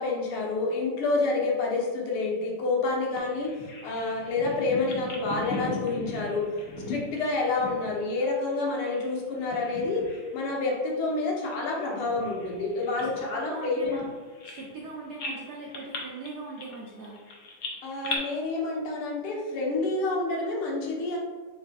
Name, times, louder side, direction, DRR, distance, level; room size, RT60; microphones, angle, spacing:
voice 1, 0.0-3.5 3.8-6.4 6.9-10.1 10.3-14.0 17.8-21.2, left 3 dB, 90° left, -1 dB, 1.8 m, -28 dB
Bird vocalization bird call bird song, 3.2-9.1 9.4-10.3 10.6-10.8 11.4-14.9 15.2-18.2, left 3 dB, 65° left, 0.9 m, -38 dB
voice 2, 13.2-14.0 14.4-17.2, right 3 dB, 70° right, -3 dB, 0.9 m, -40 dB
4.1 x 3.2 x 3.5 m, 1.5 s
omnidirectional pair, 2.4 m